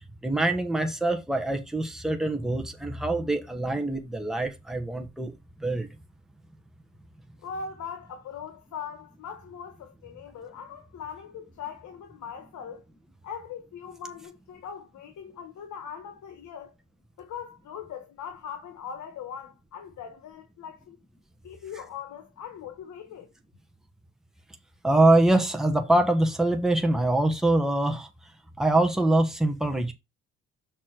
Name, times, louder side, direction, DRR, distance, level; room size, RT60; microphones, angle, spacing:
voice 1, 0.2-5.3 5.6-5.9 24.8-28.1 28.6-29.9, right 2 dB, ahead, 1.4 m, -24 dB
voice 2, 7.4-12.8 13.2-16.7 17.2-21.0 21.4-23.3, left 7 dB, 70° left, 1.4 m, -40 dB
6.5 x 4.1 x 5.9 m
cardioid pair, 90°, 30 cm